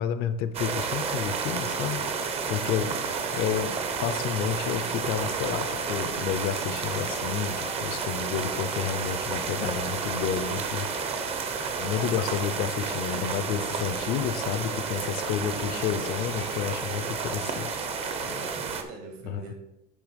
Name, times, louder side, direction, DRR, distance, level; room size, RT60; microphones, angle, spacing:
voice 1, 0.0-3.0 3.3-11.3 11.8-17.8 18.1-18.2 19.3-19.4, left 9 dB, 50° left, 12 dB, 0.6 m, -31 dB
sound 1, 0.5-18.8, right 6 dB, 30° right, 0.7 m, -31 dB
sound 2, 1.3-18.5, left 7 dB, 70° left, 0.9 m, -43 dB
voice 2, 2.7-3.1 15.5-15.9 18.2-19.5, right 3 dB, 75° right, 3 dB, 2.2 m, -44 dB
10.0 x 3.4 x 5.0 m, 0.93 s
cardioid pair, 155°, 21 cm